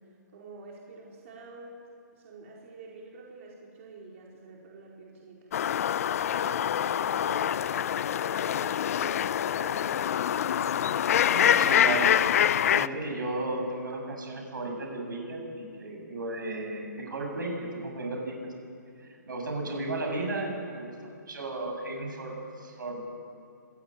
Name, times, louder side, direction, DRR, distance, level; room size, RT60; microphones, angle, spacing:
voice 1, 0.3-5.5 6.2-11.7 12.6-13.2, right 3 dB, 45° right, -3 dB, 4.5 m, -48 dB
sound 1, 5.5-12.9, left 10 dB, 50° left, 0.6 m, -25 dB
voice 2, 11.3-12.1 12.7-18.4 19.0-23.0, right 2 dB, 80° right, 2 dB, 7.3 m, -34 dB
26.0 x 17.0 x 9.2 m, 2.5 s
hypercardioid pair, 150°, 10 cm